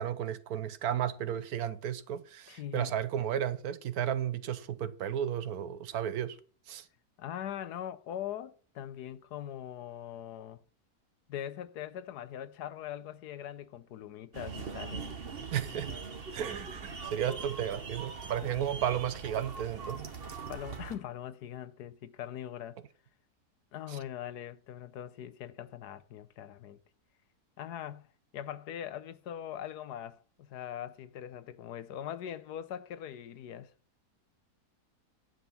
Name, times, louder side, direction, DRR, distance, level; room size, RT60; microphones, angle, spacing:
voice 1, 0.0-6.4 6.7-6.8 15.5-15.9 16.3-20.1 23.9-24.0, right 10 dB, 70° right, 1.3 m, -33 dB
voice 2, 2.5-2.9 3.3-3.4 7.2-10.6 11.3-15.1 18.5-18.9 20.5-22.8 23.7-26.8 27.6-28.1 28.3-33.7, left 10 dB, 90° left, 1.4 m, -41 dB
sound 1, 14.3-21.0, right 5 dB, 40° right, 1.4 m, -42 dB
10.5 x 8.1 x 5.7 m
omnidirectional pair, 1.7 m